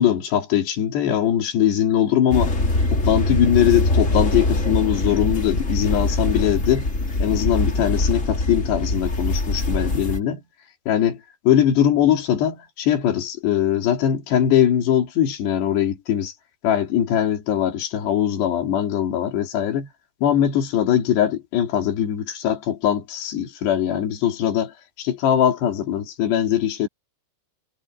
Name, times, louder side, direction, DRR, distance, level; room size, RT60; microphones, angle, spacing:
voice 1, 0.0-2.5 2.9-6.9 7.2-10.4 10.9-16.3 16.6-19.9 20.2-26.9, left 10 dB, 75° left, 4.4 m, -21 dB
sound 1, 2.3-10.2, left 2 dB, 20° left, 2.2 m, -23 dB
omnidirectional pair, 4.9 m